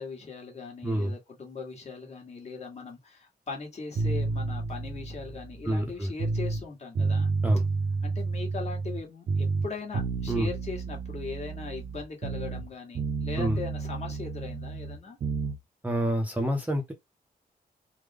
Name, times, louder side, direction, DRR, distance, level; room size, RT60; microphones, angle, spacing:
voice 1, 0.0-7.3 8.0-15.2, left 4 dB, 45° left, 1.4 m, -39 dB
voice 2, 0.8-1.1 5.7-6.1 7.4-7.6 10.3-10.5 13.4-13.6 15.8-16.9, right 1 dB, 10° right, 0.6 m, -27 dB
sound 1, 4.0-6.6 7.0-9.0 9.3-12.7 13.0-15.6, right 4 dB, 55° right, 0.6 m, -31 dB
3.4 x 2.1 x 3.5 m
wide cardioid pair, 140°, 16 cm